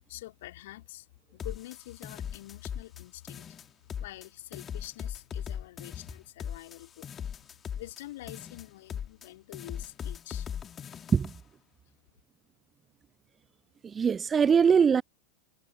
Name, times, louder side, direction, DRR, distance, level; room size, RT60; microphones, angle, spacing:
voice 1, 0.1-1.1 1.3-3.6 4.0-7.1 7.7-10.5, left 16 dB, 55° left, 2.7 m, -46 dB
sound 1, 1.4-3.0 3.3-4.3 4.5-8.0 8.3-9.3 9.5-11.4, left 8 dB, 25° left, 3.0 m, -39 dB
voice 2, 13.8-15.0, right 6 dB, 20° right, 0.3 m, -22 dB
figure-of-eight pair, 90°, 0 cm